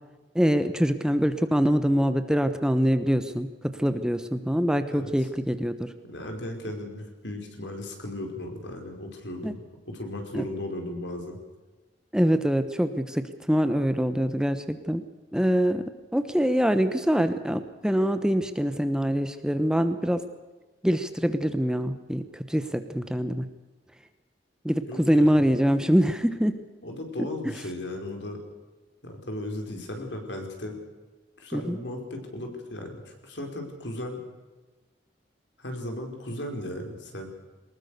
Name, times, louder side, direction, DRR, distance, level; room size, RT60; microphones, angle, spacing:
voice 1, 0.3-5.9 9.4-9.5 10.3-10.4 12.1-15.0 15.3-15.8 16.1-20.2 20.8-23.5 24.6-26.5 27.4-27.5 31.5-31.8, equal, 5° right, 10 dB, 1.0 m, -24 dB
voice 2, 6.1-11.4 24.9-25.5 26.8-28.4 29.0-30.8 31.4-34.2 35.6-37.3, left 1 dB, 70° left, 3 dB, 5.1 m, -36 dB
23.0 x 20.5 x 6.7 m, 1.3 s
head